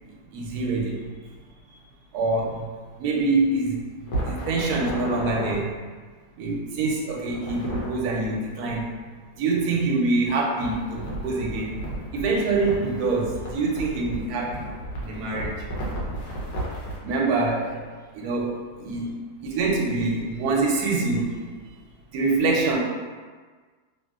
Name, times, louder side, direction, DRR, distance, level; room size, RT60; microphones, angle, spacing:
voice 1, 0.3-1.1 2.1-2.7 3.0-3.8 4.2-5.9 6.4-8.9 9.4-11.8 12.1-14.7 15.0-15.7 17.0-17.8 18.1-19.1 19.4-21.5 22.1-22.8, right 3 dB, 80° right, -1 dB, 1.1 m, -25 dB
sound 1, 4.1-5.5 7.3-7.9 10.6-17.0, right 1 dB, 85° left, 1.3 m, -33 dB
2.8 x 2.7 x 2.3 m, 1.4 s
omnidirectional pair, 1.7 m